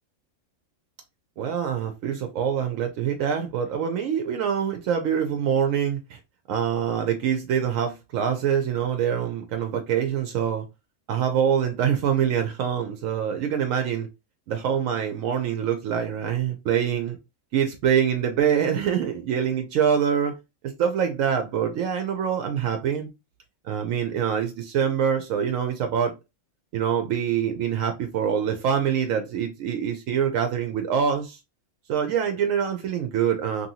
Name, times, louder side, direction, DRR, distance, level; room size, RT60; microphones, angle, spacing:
voice 1, 1.4-6.2 6.5-10.6 11.1-14.1 14.5-17.2 17.5-20.3 20.8-23.1 23.7-26.1 26.7-31.4 31.9-33.7, right 8 dB, 80° right, 1.0 m, -25 dB
2.9 x 2.7 x 2.7 m
omnidirectional pair, 1.4 m